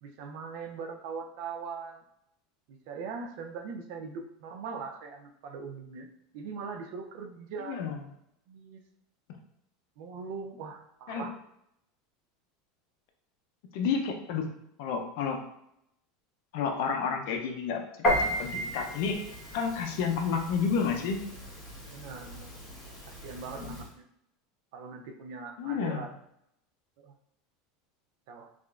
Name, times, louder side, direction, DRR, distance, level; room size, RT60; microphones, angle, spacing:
voice 1, 0.0-2.0 2.7-6.1 6.3-7.8 8.5-8.8 10.0-11.3 21.9-22.5 23.1-24.0 24.7-26.1 27.0-27.1 28.3-28.5, right 5 dB, 70° right, 5 dB, 0.4 m, -41 dB
voice 2, 7.6-8.0 11.1-11.3 13.7-14.4 14.8-15.4 16.5-17.8 18.2-19.2 19.5-21.2 25.6-26.0, left 6 dB, 70° left, 4 dB, 0.4 m, -30 dB
Piano, 18.0-23.9, equal, 30° left, 1.0 m, -34 dB
2.8 x 2.4 x 2.3 m, 0.78 s
supercardioid pair, 110°, 0 cm